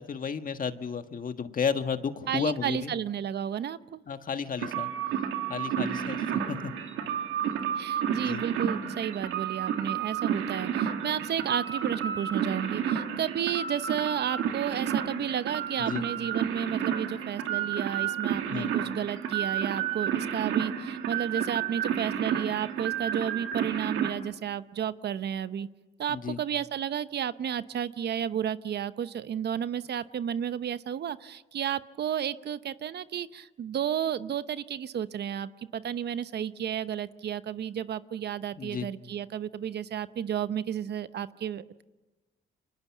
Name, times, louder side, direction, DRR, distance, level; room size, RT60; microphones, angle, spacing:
voice 1, 0.0-2.9 4.1-4.9 5.5-6.7 8.1-8.4 15.8-16.0 18.5-18.7 26.1-26.4 38.6-38.9, left 6 dB, 45° left, 8 dB, 1.6 m, -33 dB
voice 2, 2.3-4.0 5.9-6.1 7.4-25.7 26.0-41.8, right 9 dB, 60° right, 14 dB, 0.8 m, -32 dB
sound 1, 4.6-24.1, right 9 dB, 85° right, 2.2 m, -31 dB
30.0 x 25.0 x 7.3 m, 1.1 s
cardioid pair, 90°, 20 cm